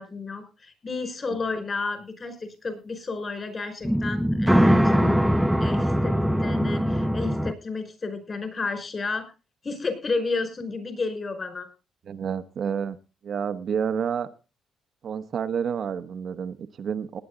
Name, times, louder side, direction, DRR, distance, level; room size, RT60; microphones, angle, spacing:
voice 1, 0.0-5.2 5.6-9.2 9.6-11.7, left 3 dB, 35° left, 8 dB, 5.2 m, -32 dB
sound 1, 3.8-7.5, equal, ahead, 0.7 m, -21 dB
voice 2, 12.1-13.0 13.2-14.3 15.0-17.2, right 7 dB, 60° right, 8 dB, 1.0 m, -29 dB
19.0 x 9.5 x 3.9 m, 0.32 s
cardioid pair, 90°, 0 cm